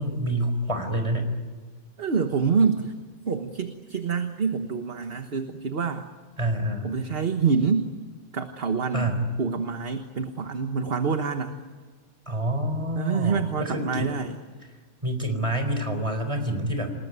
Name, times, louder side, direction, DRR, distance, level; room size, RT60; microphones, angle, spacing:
voice 1, 0.0-1.3 6.4-6.9 8.9-9.3 12.3-14.1 15.0-16.9, right 1 dB, 25° right, 6 dB, 4.3 m, -27 dB
voice 2, 2.0-2.9 3.3-6.0 6.8-7.9 8.3-11.6 12.9-14.4, right 5 dB, 50° right, 6 dB, 1.5 m, -26 dB
28.0 x 20.0 x 9.5 m, 1.4 s
omnidirectional pair, 1.3 m